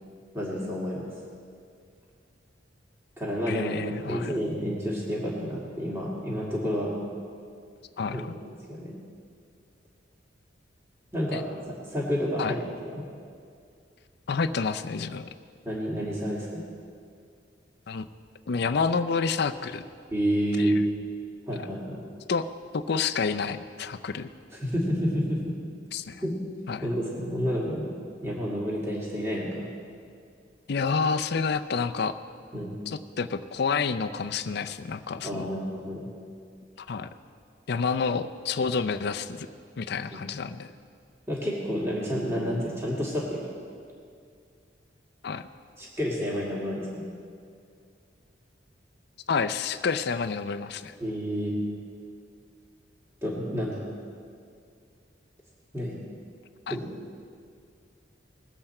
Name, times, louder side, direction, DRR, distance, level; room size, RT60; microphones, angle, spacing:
voice 1, 0.3-1.1 3.2-3.8 4.1-6.9 8.1-8.2 8.7-8.9 11.1-11.5 11.9-12.6 12.9-13.0 15.7-16.6 20.1-20.8 21.5-22.0 24.6-25.5 26.2-26.4 26.8-27.9 28.2-29.7 32.5-32.7 35.2-36.1 41.3-43.4 45.8-47.0 51.0-51.5 53.2-53.9 55.7-56.0 56.7-56.9, equal, 15° right, -5 dB, 1.9 m, -29 dB
voice 2, 3.5-4.4 8.0-8.4 11.3-11.4 12.4-12.5 14.3-15.3 17.9-18.1 18.5-19.8 20.6-20.7 22.3-22.5 22.7-24.3 25.9-26.2 26.7-26.9 30.7-32.2 32.9-35.5 36.8-37.1 37.7-39.5 39.8-40.7 45.2-45.5 49.3-50.9 56.7-56.8, left 5 dB, 60° left, 10 dB, 0.5 m, -29 dB
20.5 x 7.9 x 4.3 m, 2.3 s
head